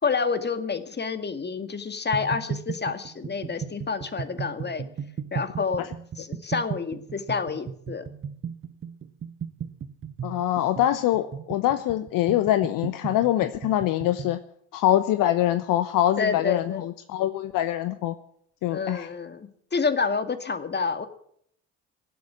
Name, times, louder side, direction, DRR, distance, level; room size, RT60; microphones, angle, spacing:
voice 1, 0.0-4.8 5.3-5.9 6.2-8.0 16.2-16.8 18.7-21.1, left 5 dB, 25° left, 9 dB, 2.1 m, -28 dB
sound 1, 2.1-14.4, right 7 dB, 35° right, 1.0 m, -36 dB
voice 2, 10.2-14.4 14.7-18.1 18.6-19.1, left 13 dB, 55° left, 11 dB, 1.0 m, -24 dB
17.5 x 7.8 x 9.8 m, 0.68 s
hypercardioid pair, 55°, 39 cm